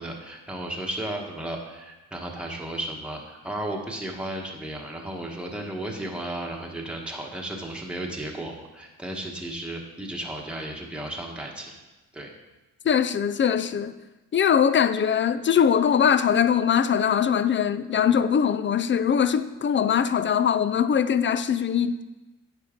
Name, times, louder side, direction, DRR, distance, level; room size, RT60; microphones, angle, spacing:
voice 1, 0.0-11.7 12.1-12.3, right 1 dB, 5° right, 1.2 m, -34 dB
voice 2, 12.8-13.9 14.3-22.1, left 8 dB, 35° left, 0.4 m, -22 dB
9.4 x 4.7 x 3.6 m
cardioid pair, 80°, 33 cm